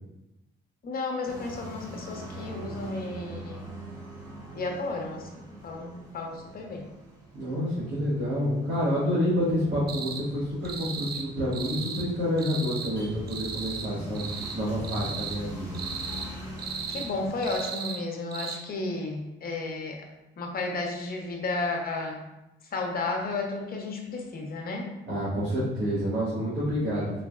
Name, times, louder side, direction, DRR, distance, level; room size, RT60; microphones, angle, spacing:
voice 1, 0.8-3.7 4.5-6.8 16.9-20.0 20.4-22.2 22.7-24.9, left 3 dB, 50° left, 2 dB, 0.8 m, -33 dB
sound 1, 1.2-17.6, equal, 15° right, 1.2 m, -43 dB
voice 2, 7.3-14.3 14.5-15.8 25.1-27.2, equal, 85° right, -11 dB, 1.5 m, -28 dB
sound 2, 9.9-10.2 10.6-11.3 11.5-12.1 12.4-12.9 13.3-13.9 14.1-14.6 14.8-15.4 15.7-16.3 16.6-17.1 17.4-18.0 18.3-18.6, right 6 dB, 50° right, 0.5 m, -36 dB
3.9 x 3.3 x 2.4 m, 0.96 s
cardioid pair, 90°, 20 cm